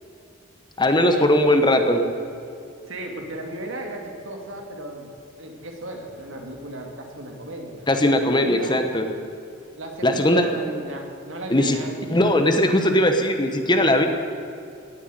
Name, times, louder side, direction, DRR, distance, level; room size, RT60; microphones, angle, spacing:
voice 1, 0.8-2.0 7.9-9.1 10.0-10.5 11.5-11.8 12.1-14.1, left 1 dB, 20° left, 6 dB, 1.1 m, -19 dB
voice 2, 2.9-5.1 5.4-8.8 9.7-12.2, right 1 dB, 65° right, 2 dB, 2.4 m, -36 dB
17.5 x 8.0 x 9.1 m, 2.6 s
head